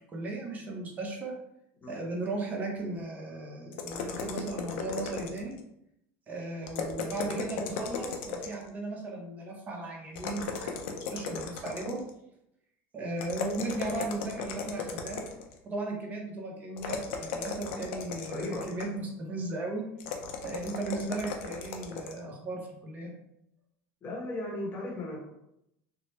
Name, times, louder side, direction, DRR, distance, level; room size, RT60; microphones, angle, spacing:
voice 1, 0.1-1.3 1.9-5.5 6.3-12.0 12.9-15.2 15.6-19.9 20.4-23.1, right 2 dB, 25° right, 0 dB, 0.7 m, -36 dB
sound 1, 3.7-5.6 6.6-8.7 10.2-12.1 13.2-15.6 16.8-19.0 20.0-22.2, left 6 dB, 80° left, 0.5 m, -36 dB
voice 2, 18.3-18.7 24.0-25.3, left 1 dB, 25° left, -3 dB, 0.9 m, -36 dB
3.0 x 2.0 x 3.1 m, 0.80 s
supercardioid pair, 135°, 6 cm